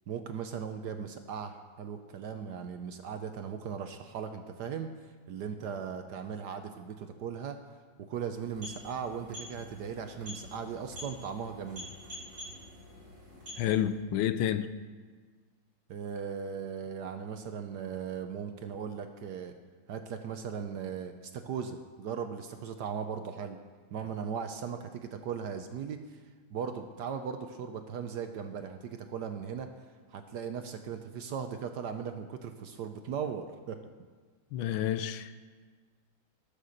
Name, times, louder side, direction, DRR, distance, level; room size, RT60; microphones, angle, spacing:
voice 1, 0.1-7.6 8.1-11.9 15.9-19.5 19.9-23.6 23.9-26.2 26.5-29.7 30.1-33.8, right 7 dB, 65° right, 7 dB, 1.1 m, -38 dB
sound 1, 8.3-14.1, left 1 dB, 45° right, 4.4 m, -47 dB
voice 2, 13.6-14.7 34.5-35.3, left 10 dB, 75° left, 12 dB, 1.4 m, -29 dB
18.5 x 6.8 x 6.5 m, 1.5 s
omnidirectional pair, 2.3 m